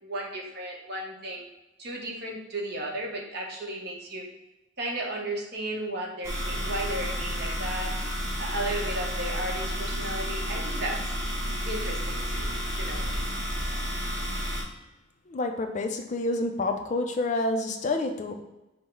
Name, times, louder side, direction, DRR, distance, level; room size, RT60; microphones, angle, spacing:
voice 1, 0.0-1.5 1.8-4.3 4.8-7.9 8.4-11.1 11.6-13.2, right 1 dB, 55° right, 0 dB, 0.9 m, -34 dB
sound 1, 6.2-14.6, equal, 15° right, 0.9 m, -31 dB
voice 2, 15.3-18.3, left 2 dB, 35° left, 5 dB, 0.4 m, -28 dB
5.4 x 2.1 x 4.4 m, 0.99 s
head